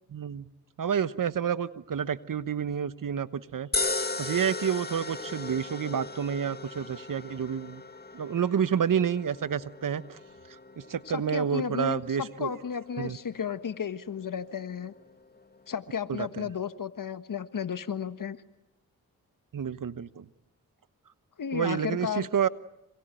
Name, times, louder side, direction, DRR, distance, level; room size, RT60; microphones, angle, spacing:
voice 1, 0.1-0.5 0.8-3.7 4.2-7.8 8.1-10.2 10.8-12.5 13.0-13.2 16.1-16.5 19.5-20.2 21.5-22.5, right 8 dB, 65° right, 15 dB, 1.1 m, -29 dB
sound 1, 3.7-16.1, left 3 dB, 25° left, 1.9 m, -38 dB
voice 2, 11.1-14.9 15.7-18.4 21.4-22.3, left 7 dB, 65° left, 11 dB, 1.6 m, -33 dB
26.5 x 24.5 x 9.1 m, 0.88 s
cardioid pair, 45°, 35 cm